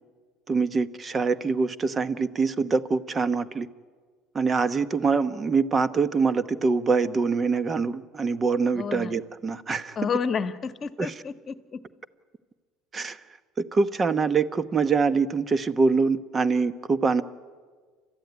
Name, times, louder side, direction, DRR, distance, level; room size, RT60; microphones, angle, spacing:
voice 1, 0.5-3.7 4.3-10.0 11.0-11.1 12.9-13.2 13.6-17.2, right 4 dB, 25° right, 14 dB, 1.0 m, -24 dB
voice 2, 8.7-9.2 10.0-11.8, left 6 dB, 30° left, 10 dB, 1.3 m, -30 dB
29.5 x 13.5 x 9.6 m, 1.5 s
cardioid pair, 125°, 0 cm